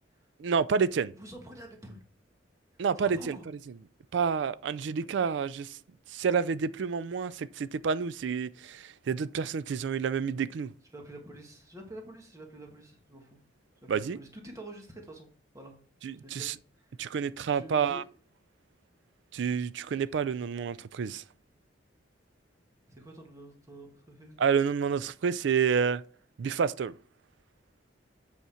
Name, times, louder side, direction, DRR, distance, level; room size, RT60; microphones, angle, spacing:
voice 1, 0.4-1.1 2.8-3.4 4.1-5.8 6.1-10.7 13.9-14.2 16.0-16.5 17.0-18.0 19.3-21.2 24.4-26.0 26.4-26.9, right 6 dB, 70° right, 0.4 m, -29 dB
voice 2, 1.2-2.0 2.7-3.5 10.9-13.4 13.8-15.3 15.5-15.7 16.2-17.1 17.4-18.1 22.9-24.4, right 1 dB, 15° right, 1.4 m, -47 dB
8.2 x 5.0 x 4.3 m
head